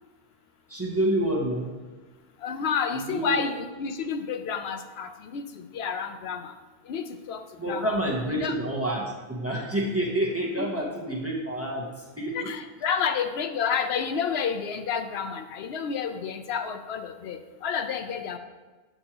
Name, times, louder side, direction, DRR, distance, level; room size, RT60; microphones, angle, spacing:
voice 1, 0.7-1.7 2.9-3.5 7.6-12.5, right 1 dB, 15° right, -3 dB, 1.0 m, -28 dB
voice 2, 2.4-5.4 5.7-6.5 6.9-7.9 8.3-8.5 10.6-10.7 12.3-18.4, left 6 dB, 75° left, 8 dB, 0.8 m, -30 dB
7.8 x 6.3 x 2.9 m, 1.3 s
omnidirectional pair, 1.1 m